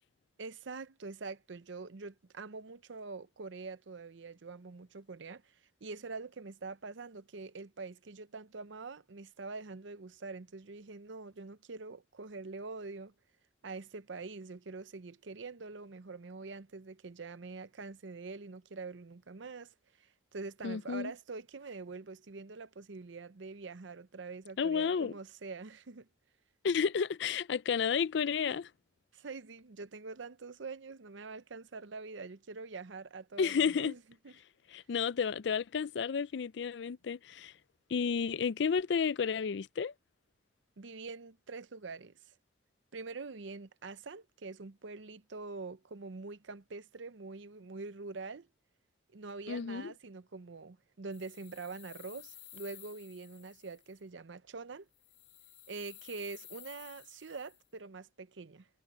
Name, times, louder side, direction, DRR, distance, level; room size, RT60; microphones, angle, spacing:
voice 1, 0.4-5.4 5.8-13.1 13.6-19.7 20.0-26.1 29.1-34.0 34.2-34.3 40.8-42.3 42.9-48.5 49.1-54.9 55.7-58.7, right 4 dB, 80° right, 0.7 m, -45 dB
voice 2, 20.6-21.1 24.6-25.1 26.6-28.7 33.4-33.9 34.7-37.5 37.9-39.9 49.5-49.9, left 6 dB, 65° left, 0.4 m, -31 dB
sound 1, 51.1-53.9 54.9-57.7, left 12 dB, 40° left, 2.9 m, -54 dB
head